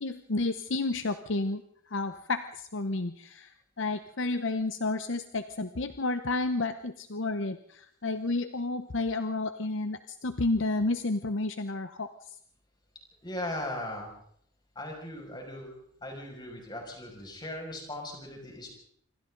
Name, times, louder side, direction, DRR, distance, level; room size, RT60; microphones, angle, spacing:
voice 1, 0.0-1.6 1.9-3.5 3.8-12.1, left 2 dB, 60° left, 9 dB, 0.8 m, -31 dB
voice 2, 13.2-14.1 14.7-15.7 16.0-18.7, left 1 dB, 20° left, 1 dB, 6.2 m, -38 dB
27.0 x 24.5 x 3.9 m, 0.65 s
head